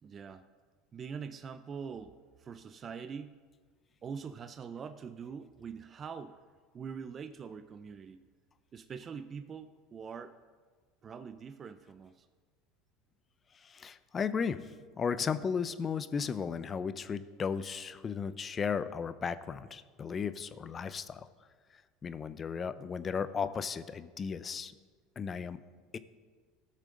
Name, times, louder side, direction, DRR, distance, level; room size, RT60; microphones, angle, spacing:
voice 1, 0.0-0.4 0.9-3.3 4.0-6.4 6.7-8.2 8.7-10.4 11.0-12.3, right 6 dB, 30° right, 9 dB, 0.5 m, -44 dB
voice 2, 13.6-14.7 15.0-21.3 22.0-24.7 25.2-25.6 25.9-26.0, left 6 dB, 30° left, 14 dB, 0.5 m, -35 dB
15.5 x 6.6 x 3.8 m, 1.5 s
supercardioid pair, 105°, 0 cm